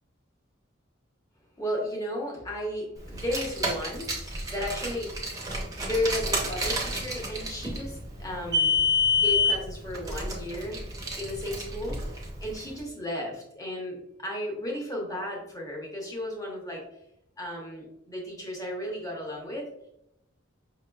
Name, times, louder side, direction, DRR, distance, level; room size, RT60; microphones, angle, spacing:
voice 1, 1.6-4.1 4.5-5.4 5.8-8.7 9.1-10.8 11.2-12.0 12.4-16.9 17.4-19.7, left 1 dB, 15° left, -2 dB, 0.8 m, -34 dB
Car, 3.1-12.6, left 3 dB, 15° right, 0.6 m, -28 dB
5.2 x 2.8 x 2.3 m, 0.80 s
head